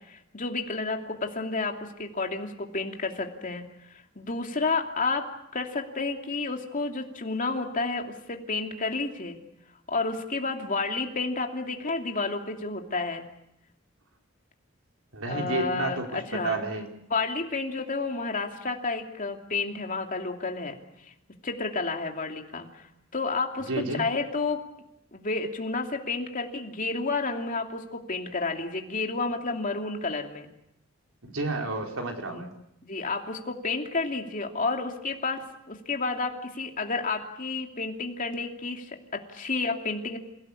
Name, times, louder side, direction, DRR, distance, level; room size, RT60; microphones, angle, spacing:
voice 1, 0.1-3.6 4.1-9.4 9.9-13.2 15.3-16.6 17.1-20.8 21.4-22.9 23.1-24.6 25.1-30.5 32.2-32.4 32.8-40.2, left 3 dB, 40° left, 3 dB, 2.8 m, -31 dB
voice 2, 15.1-16.9 23.7-24.0 31.2-32.5, right 2 dB, 90° right, 2 dB, 4.2 m, -31 dB
28.0 x 17.5 x 8.5 m, 0.83 s
head